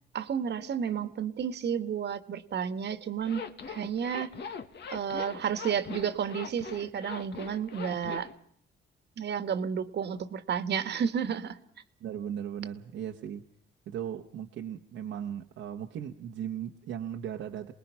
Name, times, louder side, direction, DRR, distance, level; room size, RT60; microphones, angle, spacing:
voice 1, 0.1-4.3 4.9-8.3 9.2-11.6, right 7 dB, 60° right, 1.5 m, -31 dB
Zipper (clothing), 3.2-8.3, left 5 dB, 60° left, 1.8 m, -41 dB
voice 2, 12.0-13.4 13.9-17.7, right 9 dB, 80° right, 1.2 m, -37 dB
28.5 x 20.5 x 5.8 m
cardioid pair, 90°, 20 cm